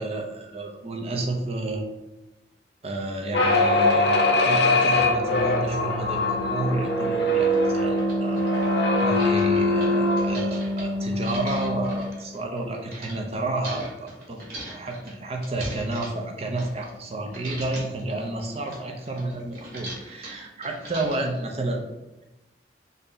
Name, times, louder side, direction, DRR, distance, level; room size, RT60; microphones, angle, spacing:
voice 1, 0.0-1.8 2.8-14.4 14.7-21.9, right 2 dB, 35° right, 3 dB, 0.5 m, -31 dB
sound 1, 3.3-12.1, left 1 dB, 70° left, 0.6 m, -22 dB
sound 2, 6.8-6.9 7.5-7.6 7.9-13.1 13.6-17.1 17.3-18.0 18.4-21.4, right 1 dB, 55° right, 1.4 m, -40 dB
3.3 x 2.7 x 3.8 m, 1.0 s
head